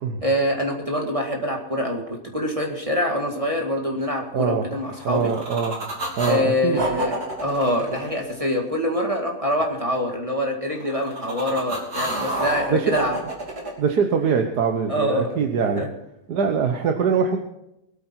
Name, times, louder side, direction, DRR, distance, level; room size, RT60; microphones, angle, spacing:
voice 1, 0.2-2.0 2.3-5.3 6.3-13.2 14.9-15.3 15.8-15.9, left 1 dB, 20° right, 0 dB, 2.1 m, -25 dB
voice 2, 4.3-4.7 5.0-5.7 6.2-6.8 12.7-13.0 13.8-15.8 16.3-17.4, right 6 dB, 85° right, 4 dB, 1.7 m, -22 dB
sound 1, 4.9-6.4 6.7-8.9 10.7-13.7, right 1 dB, 70° right, 3.6 m, -29 dB
22.5 x 9.1 x 4.5 m, 0.85 s
omnidirectional pair, 1.7 m